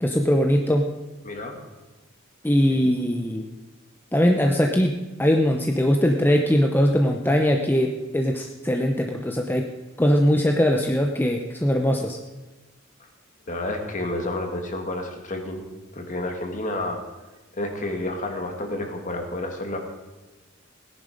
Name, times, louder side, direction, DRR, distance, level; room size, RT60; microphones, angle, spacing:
voice 1, 0.0-0.9 2.4-3.5 4.1-9.7 10.0-12.2, equal, 10° left, 3 dB, 0.7 m, -21 dB
voice 2, 1.2-1.6 2.7-2.8 13.5-15.6 15.9-17.0 17.5-19.8, left 1 dB, 40° left, 3 dB, 2.1 m, -30 dB
17.5 x 10.5 x 5.2 m, 1.2 s
head